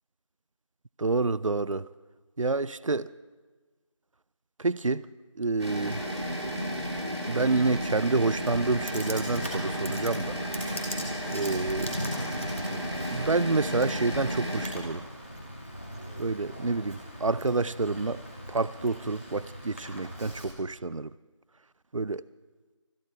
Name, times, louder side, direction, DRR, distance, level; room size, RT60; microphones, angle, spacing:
voice 1, 1.0-1.9 2.4-3.1 4.6-5.1 5.4-6.1 7.3-10.4 11.3-11.9 13.1-15.0 16.2-18.2 18.5-21.1 21.9-22.3, right 3 dB, 80° right, 0.5 m, -28 dB
sound 1, 5.6-14.7, equal, 55° right, 3.4 m, -33 dB
Computer keyboard, 8.5-20.4, equal, 25° left, 2.4 m, -40 dB
25.0 x 11.0 x 4.6 m
figure-of-eight pair, 180°, 16 cm